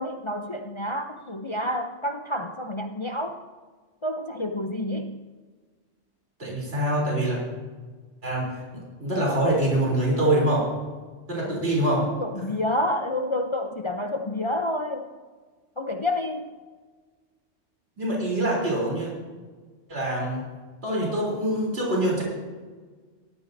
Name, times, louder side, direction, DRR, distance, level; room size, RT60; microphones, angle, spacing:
voice 1, 0.0-3.4 4.0-5.2 11.4-11.6 12.2-15.2 15.8-16.5, left 1 dB, 35° left, 5 dB, 0.5 m, -29 dB
voice 2, 6.4-7.4 8.2-8.6 9.0-10.6 11.3-12.1 18.0-19.1 19.9-20.5 20.8-22.2, right 1 dB, 55° right, -4 dB, 3.7 m, -24 dB
17.0 x 13.0 x 2.7 m, 1.4 s
omnidirectional pair, 1.3 m